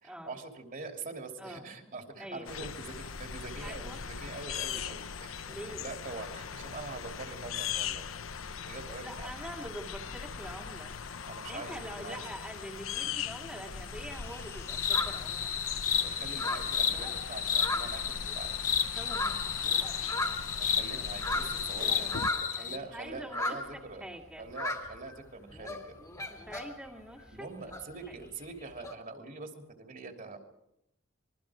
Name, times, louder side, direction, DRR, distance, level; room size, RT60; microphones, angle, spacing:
voice 1, 0.0-8.1 8.7-9.4 11.2-12.2 16.0-18.5 20.5-24.1 24.4-26.0 27.3-30.4, right 3 dB, 45° right, 3 dB, 3.0 m, -44 dB
voice 2, 2.2-2.7 3.6-4.0 5.5-5.8 9.0-10.9 11.5-15.5 18.9-19.7 21.6-22.2 22.6-23.6 24.0-24.5 26.3-27.5 28.1-28.2, equal, 5° right, 0 dB, 2.2 m, -45 dB
sound 1, 2.4-22.3, left 7 dB, 85° left, 0.9 m, -40 dB
sound 2, 13.9-15.9 16.2-18.5 18.8-22.7 23.1-23.9 24.5-25.2 25.5-26.9 27.2-28.9, left 1 dB, 15° left, 2.5 m, -38 dB
sound 3, 14.7-22.8, left 7 dB, 40° left, 1.2 m, -32 dB
25.5 x 22.5 x 5.0 m, 0.84 s
head